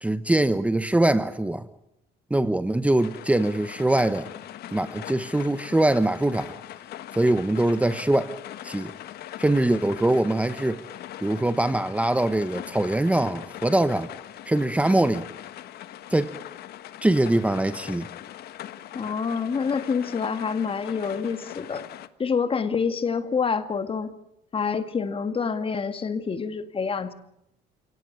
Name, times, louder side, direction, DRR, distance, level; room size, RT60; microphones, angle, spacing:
voice 1, 0.0-1.7 2.3-4.3 4.7-6.6 7.1-8.3 8.6-8.9 9.4-10.8 11.2-14.1 14.4-15.2 16.1-16.3 17.0-18.1, right 1 dB, 10° right, 12 dB, 1.0 m, -23 dB
sound 1, 3.0-22.1, left 12 dB, 70° left, 1.4 m, -41 dB
voice 2, 18.9-21.9 22.2-24.1 24.5-27.1, left 5 dB, 35° left, 10 dB, 2.1 m, -27 dB
29.5 x 18.0 x 8.8 m, 0.80 s
cardioid pair, 110°, 17 cm